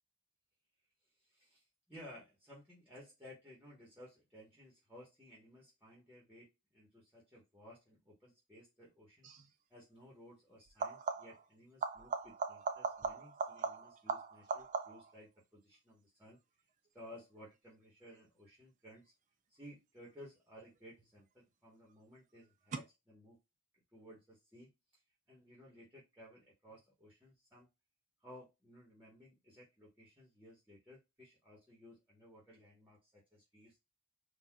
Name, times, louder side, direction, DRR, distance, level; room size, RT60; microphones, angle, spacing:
voice 1, 1.2-9.3 9.7-16.4 16.9-19.1 19.5-23.4 23.9-24.7 25.3-27.7 28.2-33.8, equal, 5° right, -5 dB, 1.2 m, -57 dB
sound 1, 9.2-9.5 10.7-11.5 11.8-15.2 20.6-21.2 22.7-22.8, right 4 dB, 35° right, 0.4 m, -40 dB
4.1 x 2.5 x 2.3 m, 0.22 s
head